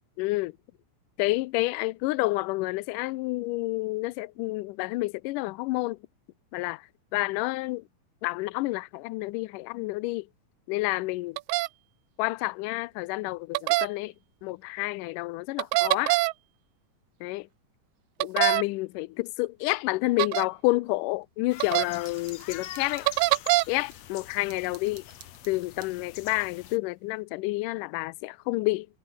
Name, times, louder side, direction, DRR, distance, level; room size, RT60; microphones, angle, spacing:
voice 1, 0.2-0.5 1.2-6.0 6.5-6.9 7.1-7.8 8.2-10.3 10.7-11.4 12.2-14.1 14.4-16.2 17.2-17.5 18.2-23.1 23.7-25.0 25.5-28.9, left 21 dB, 80° left, 2.1 m, -29 dB
sound 1, 11.4-11.7 13.5-13.9 15.6-16.3 18.2-18.6 20.2-20.4 21.6-21.8 23.1-23.6, right 21 dB, 85° right, 2.2 m, -23 dB
sound 2, 21.5-26.8, left 12 dB, 65° left, 1.9 m, -43 dB
sound 3, 21.9-24.0 24.5-26.5, right 8 dB, 45° right, 2.3 m, -53 dB
omnidirectional pair, 3.9 m